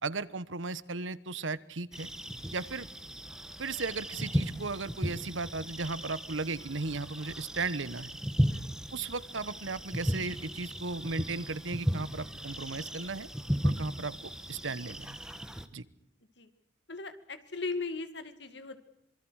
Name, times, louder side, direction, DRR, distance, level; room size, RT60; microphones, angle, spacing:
voice 1, 0.0-2.1 2.5-2.9 3.6-8.1 8.9-13.3 13.6-15.2 15.7-15.8, right 3 dB, 85° right, 17 dB, 1.2 m, -36 dB
sound 1, 1.9-15.7, equal, 5° right, 1.4 m, -35 dB
voice 2, 8.5-8.9 16.4-16.5 16.9-18.8, left 3 dB, 65° left, 10 dB, 2.3 m, -38 dB
26.5 x 24.0 x 6.4 m, 0.77 s
head